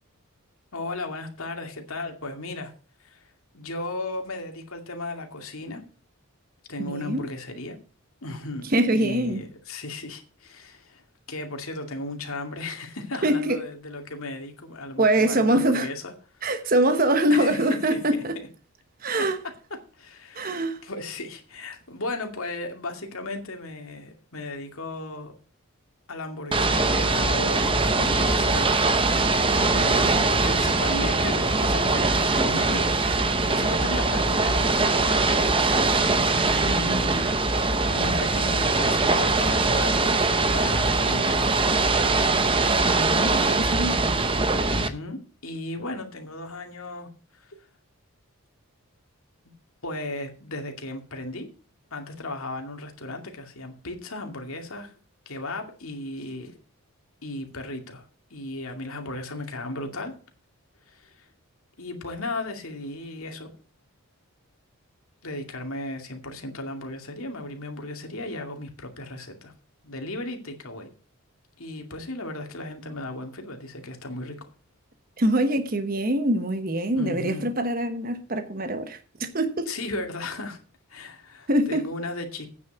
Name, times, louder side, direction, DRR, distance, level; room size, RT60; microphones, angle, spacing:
voice 1, 0.7-2.7 3.0-5.8 6.7-7.8 8.2-16.4 17.3-18.0 19.2-19.3 19.7-25.3 26.1-35.2 36.3-37.3 37.9-40.0 40.3-41.5 44.7-47.6 49.8-51.5 51.9-54.9 55.3-56.5 57.2-60.1 60.9-61.3 61.8-63.5 65.2-69.5 69.8-70.9 71.6-74.5 76.9-77.5 79.7-80.6 80.9-82.5, left 2 dB, 70° left, 2.4 m, -36 dB
voice 2, 6.8-7.3 8.6-9.4 13.2-13.6 15.0-15.9 16.4-18.4 19.0-19.4 20.3-20.8 36.6-37.3 42.8-44.2 75.2-79.7 81.5-81.9, right 1 dB, 40° right, 1.1 m, -24 dB
Ocean / Boat Water vehicle, 26.5-44.9, right 3 dB, 25° right, 0.8 m, -22 dB
9.3 x 6.3 x 8.0 m
head